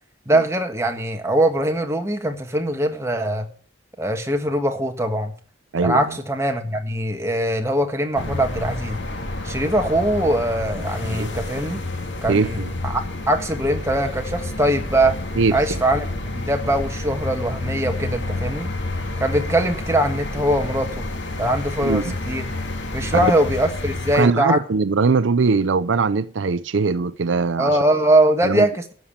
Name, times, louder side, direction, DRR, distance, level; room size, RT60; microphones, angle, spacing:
voice 1, 0.3-3.5 4.0-5.3 5.8-9.0 9.4-11.8 12.2-12.6 12.8-15.2 15.5-16.1 16.3-18.7 19.2-21.0 21.4-22.5 22.9-24.6 27.6-28.9, right 1 dB, 15° right, 1.6 m, -21 dB
voice 2, 5.7-6.0 11.1-11.3 12.3-12.7 15.4-15.8 21.8-22.2 23.1-23.3 24.1-27.8 28.4-28.7, right 4 dB, 80° right, 0.5 m, -21 dB
sound 1, 8.1-24.3, left 2 dB, 75° left, 1.9 m, -29 dB
12.5 x 7.3 x 8.6 m
head